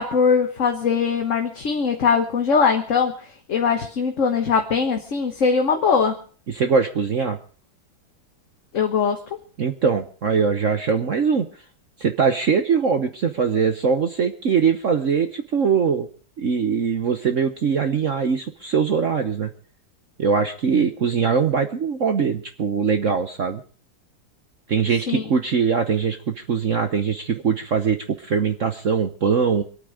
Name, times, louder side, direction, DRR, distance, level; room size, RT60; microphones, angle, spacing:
voice 1, 0.0-3.1 3.5-6.2 8.7-9.2 25.1-25.2, left 5 dB, 45° left, 4 dB, 1.4 m, -21 dB
voice 2, 6.5-7.4 9.6-11.5 12.0-16.1 16.4-19.5 20.2-23.6 24.7-29.6, right 6 dB, 50° right, 7 dB, 1.1 m, -22 dB
25.0 x 9.2 x 4.9 m, 0.41 s
omnidirectional pair, 2.1 m